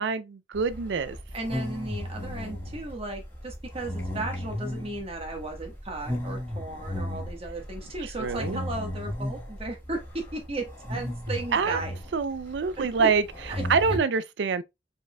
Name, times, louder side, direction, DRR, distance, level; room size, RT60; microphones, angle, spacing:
voice 1, 0.0-1.2 8.2-8.6 11.5-11.8 12.1-13.2 13.7-14.6, right 5 dB, 70° right, 0.4 m, -25 dB
sound 1, 0.5-14.0, left 1 dB, 10° left, 1.7 m, -35 dB
voice 2, 1.3-12.0 12.8-13.1 13.5-13.6, right 2 dB, 35° right, 1.4 m, -35 dB
5.0 x 4.1 x 2.2 m
head